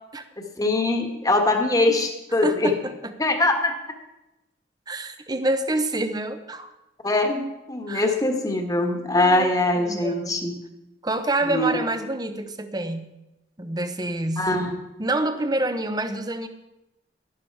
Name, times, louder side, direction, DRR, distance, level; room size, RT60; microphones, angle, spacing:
voice 1, 0.4-2.7 3.2-3.7 7.0-7.4 7.7-10.5 11.5-11.7 14.4-14.8, left 2 dB, 20° left, 4 dB, 1.5 m, -22 dB
voice 2, 2.4-2.9 4.9-6.7 7.9-8.1 9.2-10.4 11.0-13.1 13.6-14.5 15.0-16.5, right 2 dB, 20° right, 9 dB, 0.9 m, -27 dB
12.0 x 11.5 x 4.7 m, 0.94 s
head